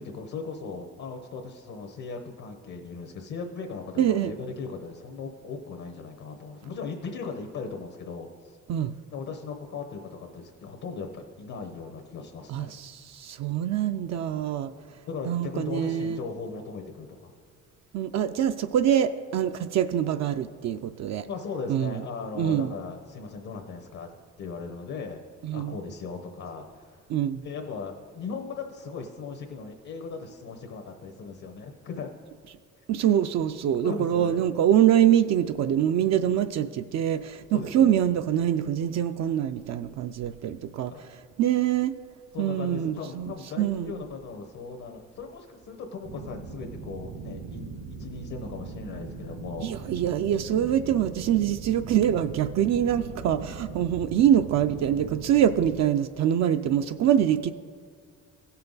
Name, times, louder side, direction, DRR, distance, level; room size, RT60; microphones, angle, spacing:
voice 1, 0.0-8.6 9.1-12.8 15.1-17.3 21.3-24.1 24.4-25.2 25.5-27.0 27.4-32.1 33.8-34.4 37.5-37.9 40.9-41.1 42.3-49.9, left 4 dB, 65° left, 3 dB, 1.0 m, -38 dB
voice 2, 4.0-4.3 8.7-8.9 12.5-14.7 15.2-16.2 17.9-21.3 21.7-22.0 22.4-22.7 25.4-25.8 27.1-27.4 32.9-41.9 42.4-44.0 49.6-57.5, right 10 dB, 60° right, 8 dB, 0.4 m, -24 dB
sound 1, 46.0-55.8, right 4 dB, 80° right, 1.1 m, -40 dB
16.0 x 5.7 x 3.9 m, 2.1 s
cardioid pair, 90°, 30 cm